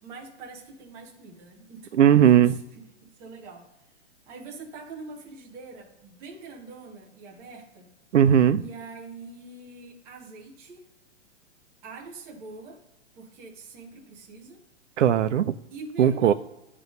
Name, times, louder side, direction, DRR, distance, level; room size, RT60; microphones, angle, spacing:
voice 1, 0.0-2.5 3.0-3.7 4.3-7.9 8.6-10.8 11.8-12.8 13.1-14.6 15.7-16.3, right 3 dB, 10° right, -1 dB, 0.4 m, -44 dB
voice 2, 2.0-2.5 8.1-8.6 15.0-15.5 16.0-16.3, right 9 dB, 75° right, 13 dB, 0.6 m, -18 dB
9.3 x 3.1 x 5.3 m, 0.93 s
hypercardioid pair, 150°, 36 cm